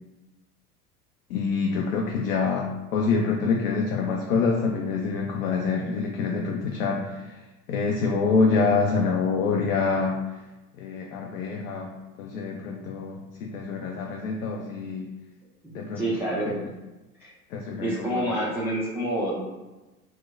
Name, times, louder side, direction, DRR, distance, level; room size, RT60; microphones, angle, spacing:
voice 1, 1.3-7.4 7.7-10.2 10.8-11.9 12.2-15.1 15.7-16.2 16.5-16.7 17.5-18.3, left 4 dB, 65° left, 1 dB, 0.5 m, -26 dB
voice 2, 15.9-16.5 17.2-17.3 17.8-19.4, right 1 dB, 5° right, -8 dB, 0.4 m, -27 dB
4.3 x 2.1 x 2.5 m, 1.1 s
figure-of-eight pair, 80°, 45 cm